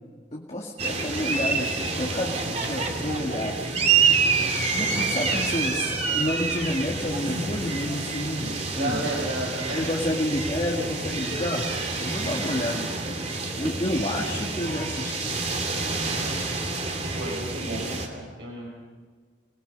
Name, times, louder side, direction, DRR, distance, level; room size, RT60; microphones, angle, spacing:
voice 1, 0.3-9.1 9.7-13.2 13.6-15.4, left 1 dB, 35° left, -1 dB, 2.0 m, -30 dB
sound 1, 0.8-18.1, right 4 dB, 35° right, 2.7 m, -27 dB
voice 2, 8.7-9.8 17.1-18.7, right 1 dB, 70° right, -4 dB, 5.0 m, -32 dB
28.0 x 20.0 x 5.4 m, 1.5 s
head